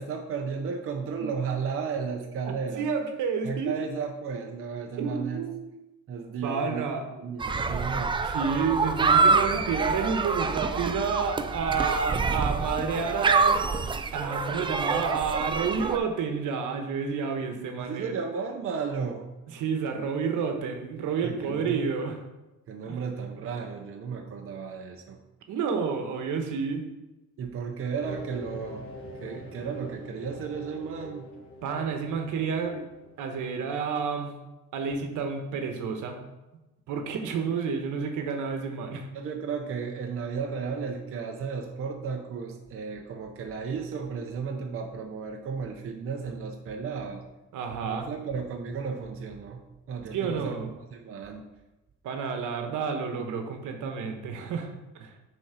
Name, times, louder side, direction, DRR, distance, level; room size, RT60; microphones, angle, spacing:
voice 1, 0.0-2.9 3.4-5.5 6.1-6.8 7.2-8.2 17.8-19.3 21.2-21.9 22.7-25.2 27.4-28.9 29.2-31.3 39.1-47.2 47.8-50.6 50.9-51.4, right 5 dB, 45° right, 2 dB, 0.7 m, -34 dB
voice 2, 2.8-3.7 5.0-5.7 6.4-7.0 8.2-13.6 14.1-18.1 19.5-22.2 22.9-23.0 25.5-26.9 31.6-32.9 33.2-34.3 34.7-36.2 36.9-39.1 47.5-48.1 50.1-50.7 52.0-54.7 55.0-55.1, right 5 dB, 75° right, 4 dB, 1.2 m, -30 dB
sound 1, 7.4-16.0, right 4 dB, 15° right, 0.3 m, -26 dB
sound 2, 28.0-33.5, left 1 dB, 40° left, 1.3 m, -45 dB
6.3 x 4.3 x 5.7 m, 1.0 s
cardioid pair, 135°, 31 cm